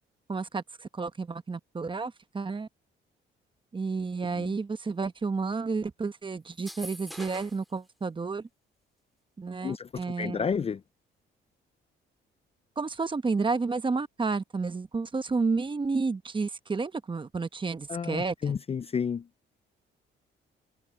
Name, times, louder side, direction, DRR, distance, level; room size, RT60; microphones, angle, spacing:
voice 1, 0.3-2.7 3.7-8.5 9.4-10.5 12.8-18.6, right 4 dB, 25° right, 1.0 m, -31 dB
sound 1, 6.5-7.7, equal, ahead, 2.9 m, -43 dB
voice 2, 9.6-10.8 17.9-19.3, left 6 dB, 30° left, 0.4 m, -31 dB
cardioid pair, 90°, 20 cm